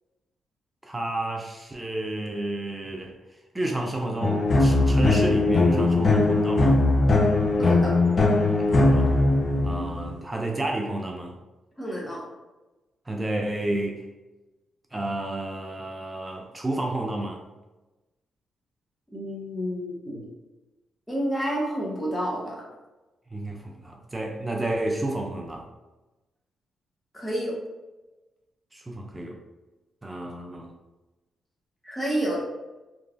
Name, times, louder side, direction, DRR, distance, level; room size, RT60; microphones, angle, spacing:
voice 1, 0.8-3.2 3.5-6.8 8.7-9.1 9.6-11.3 13.1-14.0 14.9-17.4 23.3-25.7 28.7-29.4 30.0-30.7, right 1 dB, 20° right, 1 dB, 0.4 m, -31 dB
sound 1, 4.2-10.2, left 2 dB, 45° left, 0.5 m, -20 dB
voice 2, 7.6-8.0 11.8-12.2 19.1-20.2 21.1-22.5 27.1-27.6 31.8-32.4, equal, 5° left, -4 dB, 0.9 m, -29 dB
3.0 x 2.3 x 2.4 m, 1.1 s
supercardioid pair, 60°, 0 cm